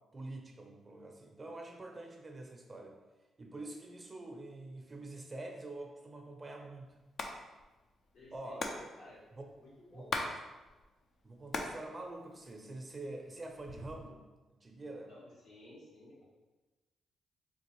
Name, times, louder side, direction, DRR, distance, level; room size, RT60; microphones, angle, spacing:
voice 1, 0.1-3.0 3.4-6.9 8.3-8.9 9.4-9.5 9.9-10.4 11.2-14.2 14.6-15.1, right 2 dB, 30° right, 2 dB, 0.5 m, -46 dB
Hands, 7.0-7.3 7.6-7.7 7.9-10.3 10.6-11.8 12.1-12.9 13.5-14.1, left 3 dB, 55° left, 0.4 m, -38 dB
voice 2, 8.1-8.6 9.0-9.2 9.6-10.3 15.1-16.2, left 1 dB, 80° left, -7 dB, 1.4 m, -55 dB
3.8 x 2.4 x 3.0 m, 1.2 s
supercardioid pair, 65°, 0 cm